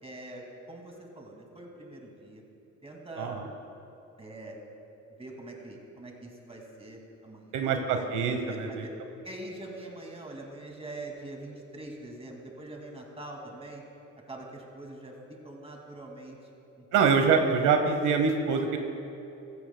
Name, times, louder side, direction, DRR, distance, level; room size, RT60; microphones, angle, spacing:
voice 1, 0.0-2.4 2.8-3.4 4.2-4.6 5.2-7.8 8.4-8.9 9.2-13.8 14.3-15.1 15.4-16.4 16.8-17.0, right 2 dB, 20° right, 0 dB, 2.3 m, -43 dB
voice 2, 7.5-8.8 16.9-18.8, right 5 dB, 85° right, 5 dB, 1.0 m, -25 dB
16.0 x 14.5 x 2.2 m, 2.9 s
cardioid pair, 90°, 30 cm